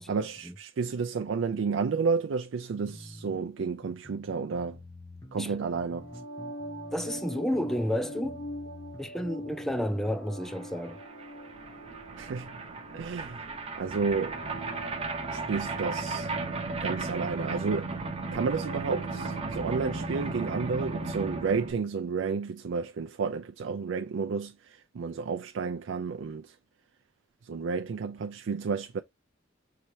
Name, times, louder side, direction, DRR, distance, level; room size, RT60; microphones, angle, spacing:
voice 1, 0.1-4.8 5.3-6.1 12.2-12.5 12.9-14.4 15.3-16.3 16.8-18.0 18.3-26.6 27.4-29.0, right 5 dB, 70° right, 0.4 m, -31 dB
sound 1, 2.9-10.3, left 1 dB, 20° left, 0.9 m, -48 dB
sound 2, 5.9-21.8, equal, 80° left, 0.8 m, -44 dB
voice 2, 6.9-8.5 9.0-11.0, equal, ahead, 0.5 m, -31 dB
sound 3, 10.6-10.7 10.8-21.7, right 3 dB, 30° right, 0.7 m, -35 dB
5.7 x 2.8 x 3.0 m
head